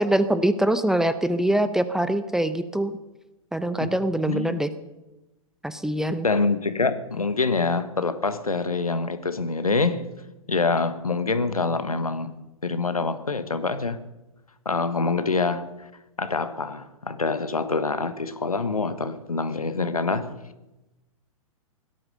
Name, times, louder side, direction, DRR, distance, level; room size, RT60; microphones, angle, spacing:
voice 1, 0.0-3.0 3.5-4.7 5.6-6.3, right 1 dB, 5° right, 0.7 m, -23 dB
voice 2, 4.3-4.6 6.2-10.1 10.5-14.0 14.6-15.7 16.2-20.3, left 4 dB, 85° left, 1.3 m, -25 dB
17.5 x 12.5 x 6.6 m
figure-of-eight pair, 110°, 18 cm